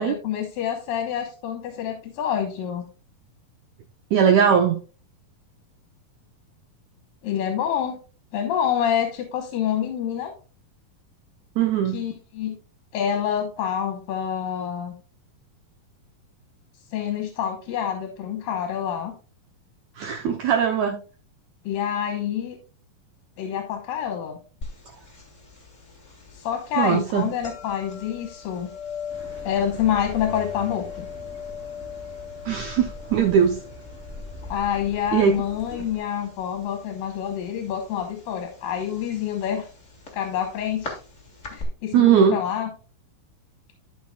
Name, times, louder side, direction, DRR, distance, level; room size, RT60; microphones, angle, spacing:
voice 1, 0.0-2.9 7.2-8.0 8.3-10.3 11.9-12.6 12.9-14.9 16.9-19.1 21.6-22.6 23.4-24.4 26.3-28.7 29.4-31.1 34.5-39.7 40.1-41.0 41.5-42.7, left 9 dB, 75° left, 2.8 m, -27 dB
voice 2, 4.1-4.8 11.6-12.0 20.0-21.0 26.8-27.3 32.4-33.6 35.1-35.4 41.9-42.4, right 8 dB, 80° right, 1.7 m, -19 dB
sound 1, 24.6-41.6, left 6 dB, 30° left, 1.5 m, -40 dB
Accelerating revving vroom, 29.1-36.0, left 1 dB, 5° right, 3.7 m, -42 dB
12.0 x 6.2 x 2.3 m
omnidirectional pair, 4.1 m